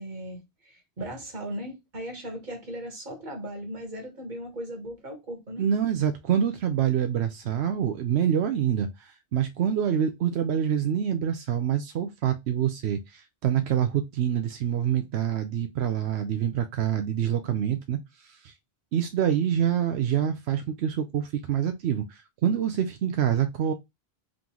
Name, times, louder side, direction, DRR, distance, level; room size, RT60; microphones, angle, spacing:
voice 1, 0.0-5.6, equal, 45° right, 1.5 m, -37 dB
voice 2, 5.6-18.5 18.9-22.1 22.4-23.7, right 9 dB, 85° right, 0.8 m, -26 dB
3.7 x 3.7 x 2.9 m
omnidirectional pair, 1.1 m